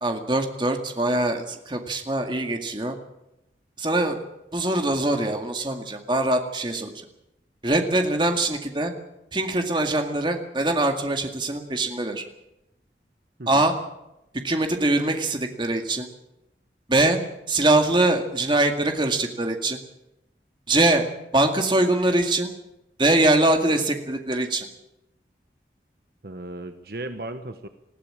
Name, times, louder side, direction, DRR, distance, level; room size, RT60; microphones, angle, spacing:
voice 1, 0.0-3.0 3.8-4.2 4.5-6.9 7.6-8.9 9.3-12.2 13.5-13.7 14.4-16.1 16.9-17.2 17.5-19.8 20.7-21.0 21.3-22.5 23.0-24.7, right 2 dB, 25° right, 5 dB, 2.0 m, -23 dB
voice 2, 26.2-27.7, right 2 dB, 55° right, 8 dB, 1.1 m, -36 dB
20.0 x 15.0 x 8.8 m, 0.90 s
head